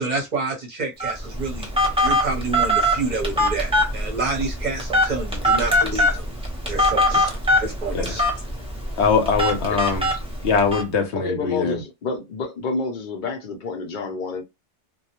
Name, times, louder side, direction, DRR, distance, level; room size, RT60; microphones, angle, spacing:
voice 1, 0.0-1.7 2.0-6.3 6.7-7.3 7.6-8.2, right 3 dB, 45° right, 0.8 m, -28 dB
Telephone, 1.0-10.8, left 1 dB, 5° right, 0.5 m, -22 dB
voice 2, 7.9-8.2 9.0-10.1 10.4-11.8, left 5 dB, 75° left, 0.9 m, -22 dB
voice 3, 11.1-14.4, left 4 dB, 50° left, 0.7 m, -29 dB
2.2 x 2.0 x 2.8 m
omnidirectional pair, 1.2 m